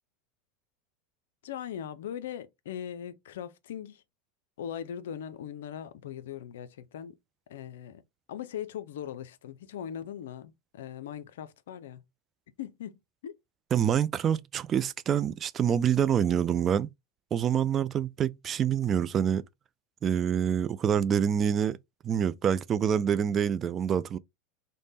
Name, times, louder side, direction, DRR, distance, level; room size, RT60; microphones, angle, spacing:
voice 1, 1.4-4.0 4.6-7.1 7.5-8.0 8.3-12.0 12.6-13.3, left 9 dB, 80° left, 0.4 m, -40 dB
voice 2, 13.7-16.9 17.3-19.4 20.0-21.8 22.0-24.2, right 8 dB, 35° right, 0.3 m, -26 dB
3.3 x 2.1 x 4.0 m
hypercardioid pair, 95°, 0 cm